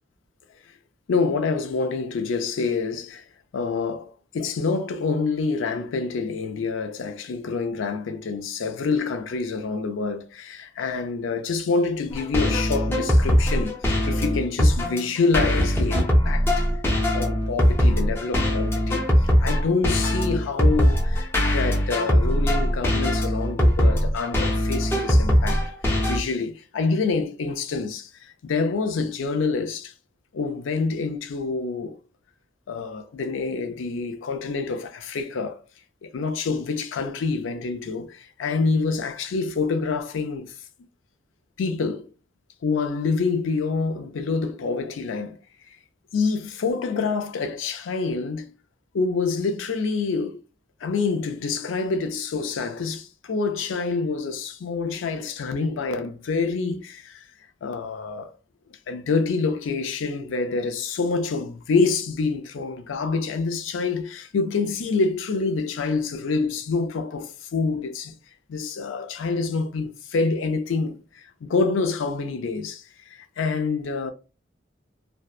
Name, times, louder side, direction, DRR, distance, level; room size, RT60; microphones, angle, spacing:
voice 1, 1.1-3.3 3.5-16.7 17.1-25.6 26.0-29.9 30.3-32.0 32.7-35.6 36.0-40.5 41.6-42.1 42.6-45.4 46.1-48.5 48.9-50.4 50.8-57.3 57.6-58.3 58.9-68.2 68.5-74.1, left 4 dB, 75° left, 0.4 m, -27 dB
sound 1, 12.1-26.2, equal, 10° left, 0.5 m, -21 dB
2.6 x 2.1 x 2.3 m
head